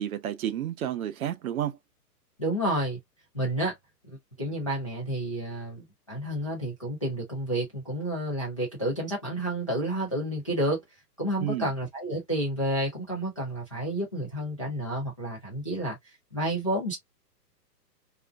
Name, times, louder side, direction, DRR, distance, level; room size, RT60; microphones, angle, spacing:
voice 1, 0.0-1.8 11.4-11.7, right 11 dB, 60° right, 0.6 m, -31 dB
voice 2, 2.4-3.0 3.3-3.8 4.0-10.8 11.2-16.0 16.3-17.0, right 1 dB, 25° left, 0.3 m, -30 dB
2.4 x 2.1 x 2.4 m
hypercardioid pair, 130°, 49 cm